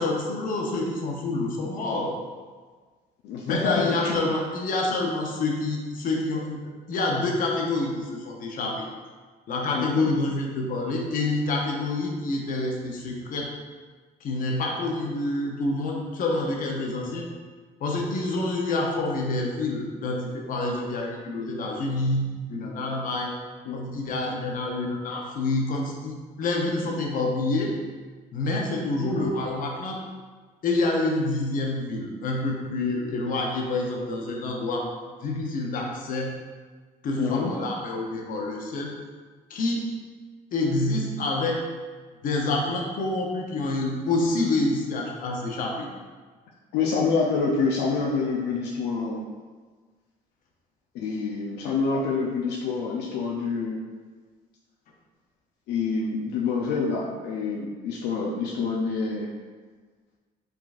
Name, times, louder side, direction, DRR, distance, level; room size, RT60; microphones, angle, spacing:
voice 1, 0.0-2.2 3.4-8.8 9.5-13.5 14.2-17.3 17.8-23.3 23.7-27.7 28.3-30.0 30.6-34.9 35.2-36.3 37.0-38.9 39.5-39.9 40.5-41.6 42.2-45.9, left 2 dB, 55° left, 0 dB, 0.9 m, -27 dB
voice 2, 3.2-4.2 9.7-10.1 23.7-23.8 29.0-29.3 37.2-37.5 46.7-49.2 50.9-53.8 55.7-59.3, left 4 dB, 80° left, -2 dB, 0.5 m, -27 dB
4.8 x 3.8 x 2.5 m, 1.4 s
cardioid pair, 110°, 17 cm